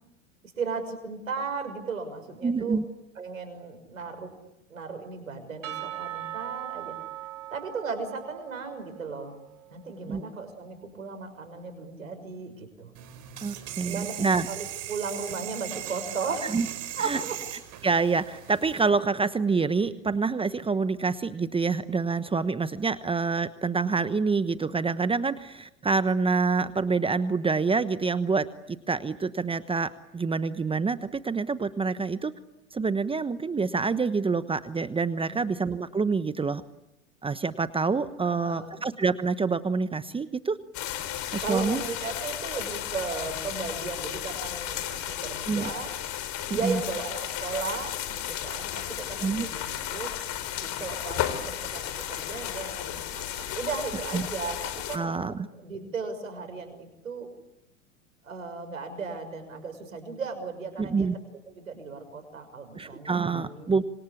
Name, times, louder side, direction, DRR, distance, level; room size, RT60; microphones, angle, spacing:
voice 1, 0.6-2.8 3.1-4.3 4.7-7.0 7.5-9.4 9.7-12.9 13.8-14.1 14.5-16.5 17.0-17.4 35.3-35.4 38.2-38.8 41.4-45.9 46.5-50.1 50.6-55.2 55.6-57.3 58.2-61.1 61.5-63.7, right 4 dB, 90° right, 8 dB, 6.2 m, -36 dB
voice 2, 2.4-2.8 10.1-10.2 13.4-14.5 16.5-16.7 17.0-17.2 17.8-32.3 32.7-36.6 37.2-40.6 41.3-41.8 45.5-45.7 46.5-46.8 49.2-49.4 54.1-54.3 54.9-55.5 60.8-61.1 62.8-63.8, right 4 dB, 15° right, 13 dB, 1.1 m, -27 dB
Percussion / Church bell, 5.6-10.0, right 13 dB, 70° right, 2.6 m, -40 dB
sound 1, 12.9-18.9, right 12 dB, 45° right, 4.8 m, -38 dB
sound 2, 40.7-55.0, left 11 dB, 45° left, 3.9 m, -34 dB
27.0 x 26.0 x 8.4 m, 0.90 s
hypercardioid pair, 95°, 39 cm